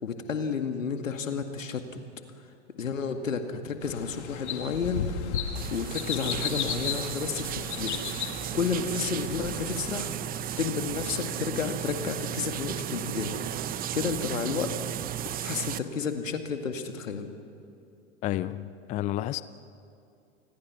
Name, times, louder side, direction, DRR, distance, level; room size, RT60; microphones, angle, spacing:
voice 1, 0.0-1.8 2.8-5.4 5.7-8.0 8.5-10.1 10.6-13.4 13.9-14.7 15.4-17.3, left 5 dB, 80° left, 6 dB, 2.1 m, -31 dB
sound 1, 3.8-10.0, left 8 dB, 60° left, 2.2 m, -35 dB
sound 2, 5.5-15.8, right 11 dB, 25° right, 0.7 m, -34 dB
voice 2, 18.2-19.4, left 14 dB, 20° left, 15 dB, 0.4 m, -31 dB
28.0 x 20.5 x 6.2 m, 2.6 s
figure-of-eight pair, 95°, 39 cm